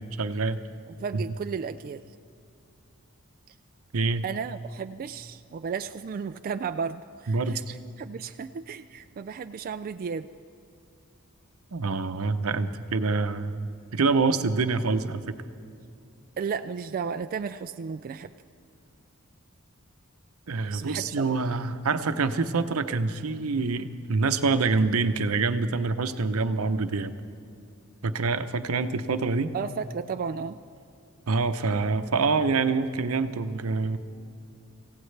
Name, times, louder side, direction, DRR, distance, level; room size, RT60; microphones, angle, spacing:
voice 1, 0.2-0.6 1.1-1.2 3.9-4.2 7.3-7.7 11.7-15.2 20.5-27.1 28.0-29.5 31.3-34.0, right 4 dB, 80° right, 10 dB, 0.7 m, -26 dB
voice 2, 1.0-2.0 4.2-7.6 8.0-10.3 16.4-18.3 20.7-21.4 29.5-30.6, right 6 dB, 40° right, 9 dB, 0.3 m, -34 dB
26.0 x 16.5 x 3.3 m, 2.5 s
head